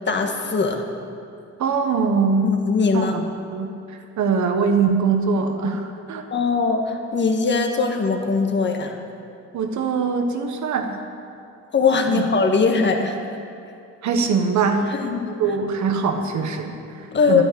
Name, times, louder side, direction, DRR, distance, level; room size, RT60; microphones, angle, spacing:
voice 1, 0.1-0.8 2.4-3.2 6.3-9.0 11.7-13.2 14.9-15.3 17.1-17.4, left 4 dB, 35° left, 3 dB, 1.7 m, -20 dB
voice 2, 1.6-2.5 2.9-3.2 3.5-6.2 9.5-11.0 12.1-12.6 14.0-14.8 15.4-17.4, right 5 dB, 70° right, 5 dB, 1.4 m, -22 dB
11.5 x 9.6 x 8.1 m, 2.6 s
cardioid pair, 90°, 30 cm